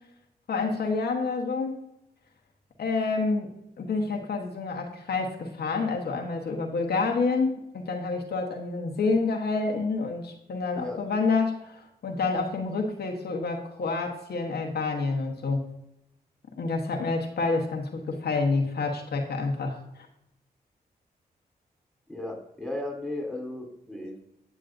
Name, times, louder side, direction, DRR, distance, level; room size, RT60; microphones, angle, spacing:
voice 1, 0.5-1.7 2.8-3.5 3.8-15.6 16.6-20.1, left 3 dB, 75° left, 1 dB, 1.1 m, -28 dB
voice 2, 22.1-24.2, left 1 dB, ahead, 1 dB, 3.3 m, -35 dB
9.0 x 8.3 x 2.6 m, 0.84 s
cardioid pair, 45°, 17 cm